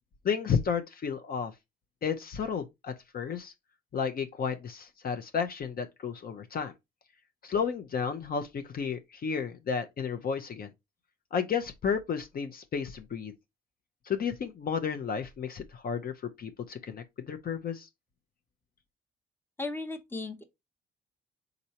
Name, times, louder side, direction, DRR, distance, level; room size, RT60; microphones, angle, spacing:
voice 1, 0.2-1.5 2.0-3.5 3.9-6.7 7.4-10.7 11.3-13.3 14.1-16.1 16.4-17.9, left 6 dB, 50° left, 0.7 m, -32 dB
voice 2, 19.6-20.4, left 3 dB, 10° left, 0.8 m, -36 dB
4.4 x 4.0 x 2.8 m
cardioid pair, 90°, 20 cm